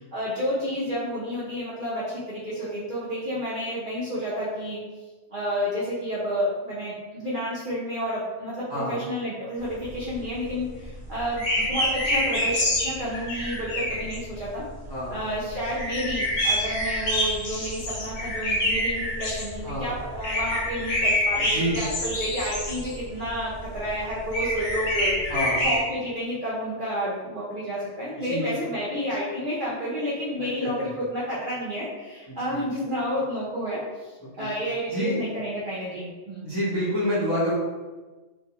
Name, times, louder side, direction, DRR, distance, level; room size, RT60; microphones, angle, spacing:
voice 1, 0.1-4.8 5.3-14.6 15.1-25.1 25.6-36.5, equal, 55° right, -8 dB, 0.6 m, -30 dB
sound 1, 9.7-25.8, left 1 dB, 65° left, 0.9 m, -27 dB
voice 2, 21.4-21.8 25.3-25.6 28.2-28.5 30.6-30.9 32.3-32.6 34.2-34.5 34.9-35.2 36.4-37.5, equal, 25° left, -10 dB, 0.5 m, -28 dB
2.6 x 2.2 x 2.8 m, 1.3 s
omnidirectional pair, 1.3 m